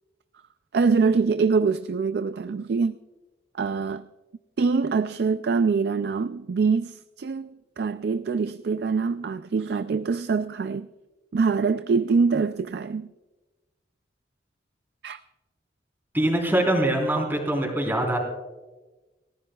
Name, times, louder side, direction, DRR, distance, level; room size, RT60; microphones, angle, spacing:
voice 1, 0.7-3.0 3.6-4.1 4.6-10.9 11.3-13.1 15.0-15.2, right 5 dB, 60° right, 0.4 m, -24 dB
voice 2, 16.1-18.2, right 1 dB, 10° right, 3.9 m, -23 dB
29.0 x 14.5 x 2.3 m
head